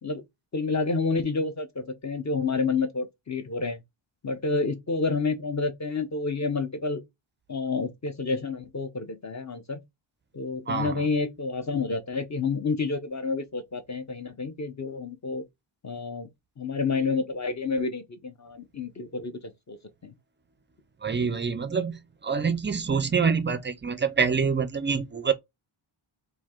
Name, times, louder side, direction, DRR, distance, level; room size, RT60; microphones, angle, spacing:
voice 1, 0.5-3.8 4.2-7.0 7.5-9.8 10.3-15.4 15.8-16.3 16.6-19.8 20.0-20.1 21.2-21.4, left 4 dB, 35° left, 0.6 m, -29 dB
voice 2, 10.7-11.0 21.0-25.3, right 5 dB, 25° right, 0.4 m, -26 dB
4.4 x 2.7 x 3.6 m
wide cardioid pair, 175°, 49 cm